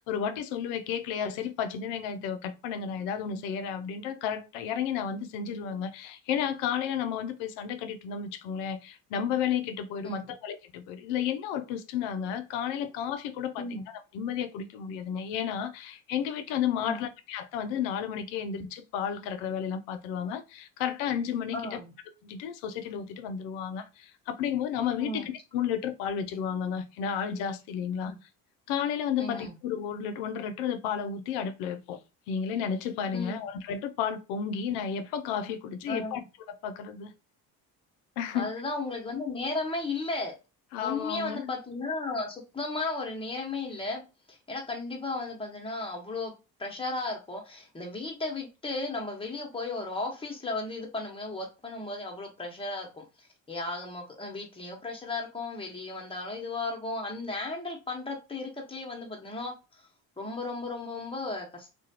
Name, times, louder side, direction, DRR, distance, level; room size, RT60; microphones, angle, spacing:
voice 1, 0.0-21.8 22.2-28.1 28.7-32.0 32.3-36.2 36.5-37.1 38.2-38.5 40.7-41.5, left 8 dB, 80° left, 0.5 m, -32 dB
voice 2, 21.5-21.9 25.0-25.3 28.0-28.2 29.2-29.5 33.1-33.4 35.9-36.2 38.3-40.3 40.8-44.0 44.3-46.3 46.6-53.0 53.5-59.5 60.2-61.7, left 2 dB, 15° left, 1.0 m, -35 dB
2.4 x 2.3 x 2.7 m
hypercardioid pair, 65°, 40 cm